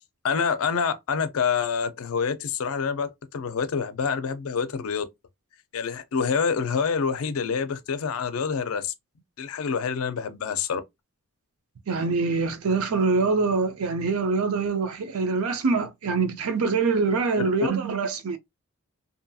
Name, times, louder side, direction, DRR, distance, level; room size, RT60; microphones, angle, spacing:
voice 1, 0.2-5.0 5.7-8.9 9.4-10.8 17.4-17.5, left 6 dB, 75° left, 0.4 m, -27 dB
voice 2, 11.9-18.4, right 4 dB, 75° right, 0.5 m, -24 dB
2.7 x 2.3 x 2.6 m
head